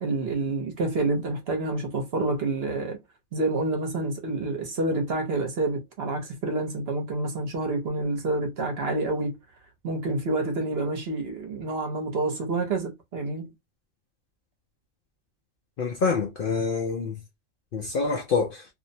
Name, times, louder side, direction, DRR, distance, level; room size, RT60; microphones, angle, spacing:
voice 1, 0.0-3.0 3.3-9.4 9.8-13.5, right 2 dB, 55° right, 0.9 m, -28 dB
voice 2, 15.8-17.2 17.7-18.7, left 4 dB, 60° left, 0.6 m, -26 dB
2.6 x 2.0 x 2.6 m
omnidirectional pair, 1.3 m